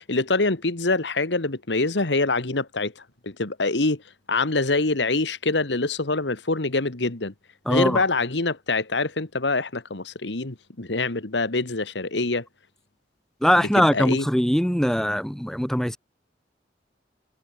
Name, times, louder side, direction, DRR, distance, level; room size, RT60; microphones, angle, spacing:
voice 1, 0.0-4.0 4.3-7.3 7.7-12.5 13.5-14.3, left 3 dB, 85° left, 1.8 m, -25 dB
voice 2, 7.7-8.0 13.4-16.0, equal, 5° left, 1.0 m, -21 dB
head